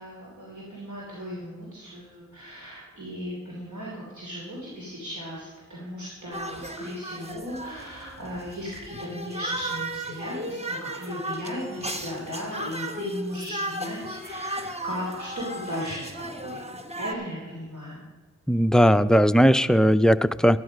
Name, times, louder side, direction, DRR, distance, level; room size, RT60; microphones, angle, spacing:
voice 1, 0.0-16.6 16.9-18.0, equal, 65° right, -5 dB, 3.0 m, -36 dB
sound 1, 6.3-17.1, right 1 dB, 20° right, 1.1 m, -35 dB
voice 2, 18.5-20.6, equal, ahead, 12 dB, 0.3 m, -18 dB
12.0 x 11.0 x 5.0 m, 1.3 s
wide cardioid pair, 45°, 31 cm